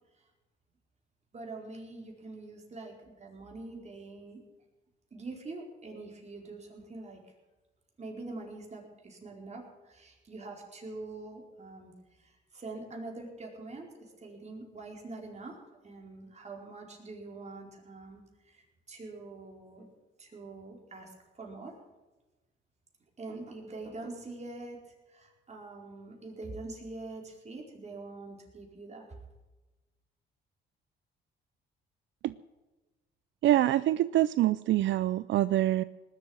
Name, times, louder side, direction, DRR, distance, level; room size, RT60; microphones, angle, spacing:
voice 1, 1.3-4.4 5.1-7.2 8.0-19.9 20.2-21.7 23.2-24.8 25.1-29.1, right 3 dB, 35° right, 0 dB, 4.6 m, -44 dB
voice 2, 33.4-35.8, right 14 dB, 70° right, 15 dB, 0.5 m, -25 dB
19.0 x 7.6 x 9.6 m, 1.1 s
cardioid pair, 90°, 20 cm